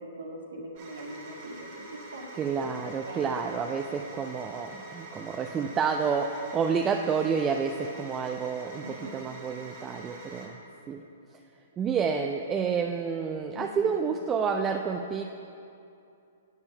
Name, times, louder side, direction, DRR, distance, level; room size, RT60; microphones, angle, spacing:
voice 1, 0.0-1.7 2.1-2.3 2.6-3.4 8.8-9.3 13.5-14.0, right 1 dB, 75° right, -2 dB, 1.7 m, -41 dB
sound 1, 0.8-10.5, right 2 dB, 45° right, 1.7 m, -46 dB
voice 2, 2.4-10.6 10.9-11.1 11.8-15.2, right 6 dB, 20° right, 3 dB, 0.4 m, -29 dB
8.0 x 7.0 x 5.3 m, 2.6 s
figure-of-eight pair, 120°, 0 cm